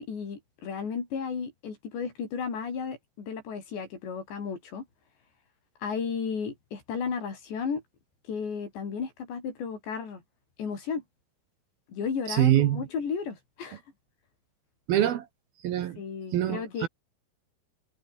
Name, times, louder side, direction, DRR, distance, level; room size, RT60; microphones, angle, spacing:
voice 1, 0.0-4.9 5.8-7.8 8.3-10.2 10.6-11.0 11.9-13.8 16.0-16.9, left 6 dB, 60° left, 7.1 m, -34 dB
voice 2, 12.3-12.8 14.9-15.3 15.6-16.0 16.3-16.9, right 12 dB, 70° right, 2.4 m, -24 dB
omnidirectional pair, 5.9 m